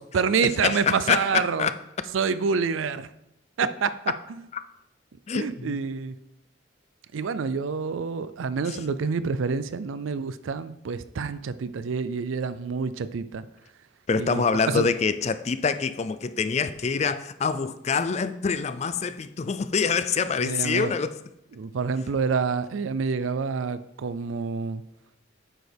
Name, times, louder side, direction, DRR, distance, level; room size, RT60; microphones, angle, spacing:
voice 1, 0.0-1.7 2.1-3.1 3.6-3.9 5.3-6.1 7.1-13.5 14.2-14.9 20.4-20.9 21.6-24.8, right 5 dB, 80° right, 0.4 m, -27 dB
voice 2, 0.6-1.7 5.3-5.8 8.7-8.8 14.1-21.2, left 5 dB, 35° left, 0.4 m, -25 dB
8.9 x 6.3 x 3.4 m
head